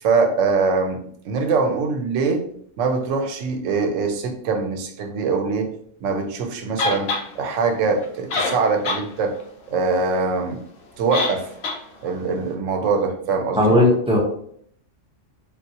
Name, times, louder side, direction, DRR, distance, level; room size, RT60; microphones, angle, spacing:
voice 1, 0.0-2.5 2.8-5.7 6.0-9.3 9.7-10.6 11.0-11.5 12.0-13.8, right 4 dB, 85° right, 5 dB, 0.9 m, -23 dB
sound 1, 6.8-7.2 8.0-8.1 8.3-9.0 9.4-9.5 11.1-11.4 11.6-11.8, left 3 dB, 60° left, 0.8 m, -24 dB
voice 2, 13.6-14.2, left 1 dB, 5° right, -4 dB, 0.5 m, -16 dB
3.5 x 2.4 x 2.7 m, 0.64 s
omnidirectional pair, 1.3 m